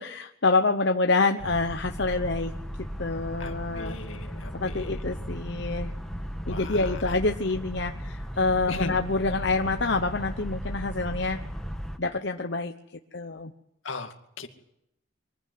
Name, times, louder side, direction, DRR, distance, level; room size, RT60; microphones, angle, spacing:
voice 1, 0.0-2.5 3.0-4.0 4.5-5.9 6.5-11.4 12.0-12.7 13.1-13.5, left 3 dB, 60° left, 5 dB, 1.0 m, -27 dB
sound 1, 1.4-12.0, equal, ahead, 1.5 m, -36 dB
voice 2, 3.4-4.9 6.5-7.0 8.7-8.9 13.8-14.5, left 3 dB, 80° left, 6 dB, 2.3 m, -37 dB
23.5 x 15.5 x 9.5 m, 0.77 s
head